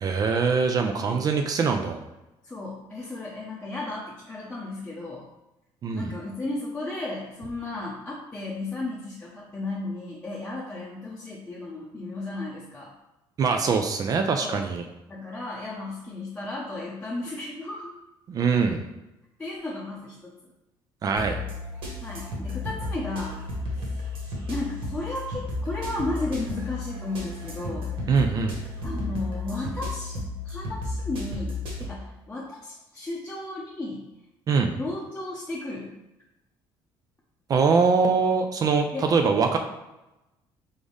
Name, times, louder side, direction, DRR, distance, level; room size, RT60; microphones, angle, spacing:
voice 1, 0.0-2.0 5.8-6.0 13.4-14.8 18.3-18.8 21.0-21.4 28.1-28.6 34.5-34.7 37.5-39.6, right 5 dB, 40° right, 5 dB, 0.5 m, -23 dB
voice 2, 2.4-5.3 5.9-12.9 14.4-14.6 15.1-17.9 19.4-20.3 22.0-23.4 23.7-24.1 24.5-27.9 28.8-30.2 30.4-34.1 34.7-36.0 38.9-39.1, left 2 dB, 15° left, -6 dB, 0.7 m, -34 dB
sound 1, 21.2-31.8, left 2 dB, 70° right, 1.5 m, -33 dB
3.9 x 3.6 x 3.5 m, 0.95 s
cardioid pair, 125°, 10 cm